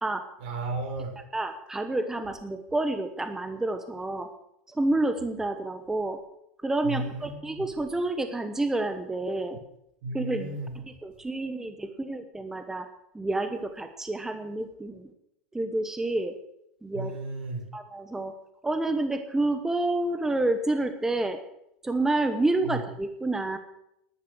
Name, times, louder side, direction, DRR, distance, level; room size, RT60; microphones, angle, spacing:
voice 1, 0.4-1.1 6.8-7.6 10.0-10.7 16.9-17.6 22.6-22.8, right 2 dB, 70° right, 3 dB, 5.2 m, -34 dB
voice 2, 1.3-4.3 4.7-6.2 6.6-9.6 10.1-12.9 13.1-15.1 15.5-16.4 16.8-17.1 17.7-18.3 18.6-21.4 21.8-23.6, right 2 dB, 10° right, 8 dB, 1.0 m, -29 dB
12.5 x 11.5 x 6.4 m, 0.80 s
supercardioid pair, 115°, 6 cm